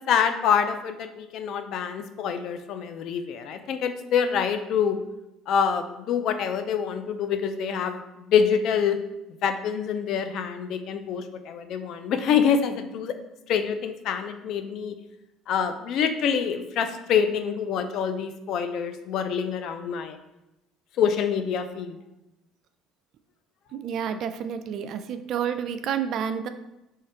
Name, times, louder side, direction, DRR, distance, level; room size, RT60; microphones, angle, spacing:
voice 1, 0.1-5.0 5.5-9.0 9.4-13.1 13.5-15.0 15.5-20.2 21.0-22.0, left 7 dB, 65° left, 8 dB, 0.4 m, -26 dB
voice 2, 23.7-26.5, right 8 dB, 60° right, 10 dB, 0.4 m, -29 dB
3.7 x 3.2 x 4.2 m, 0.94 s
supercardioid pair, 85°, 0 cm